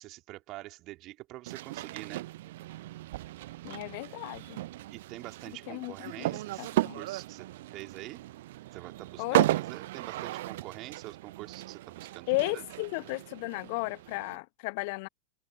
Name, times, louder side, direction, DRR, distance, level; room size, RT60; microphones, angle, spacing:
voice 1, 0.0-2.3 4.9-8.2 8.7-12.6, right 18 dB, 40° right, 3.4 m, -45 dB
sound 1, 1.5-14.4, right 16 dB, 55° right, 0.6 m, -35 dB
voice 2, 3.6-4.6 5.7-7.0 9.2-9.5 12.3-15.1, left 27 dB, 45° left, 1.0 m, -34 dB
figure-of-eight pair, 90°, 0 cm